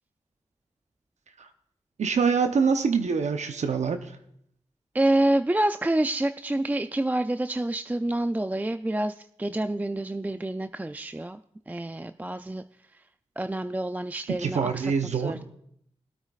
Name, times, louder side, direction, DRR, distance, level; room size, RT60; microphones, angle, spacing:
voice 1, 2.0-4.1 14.3-15.4, right 5 dB, 80° right, 7 dB, 0.8 m, -25 dB
voice 2, 4.9-11.4 11.7-12.7 13.4-15.4, right 1 dB, 15° right, 9 dB, 0.4 m, -27 dB
21.0 x 8.8 x 2.4 m, 0.71 s
cardioid pair, 40°, 12 cm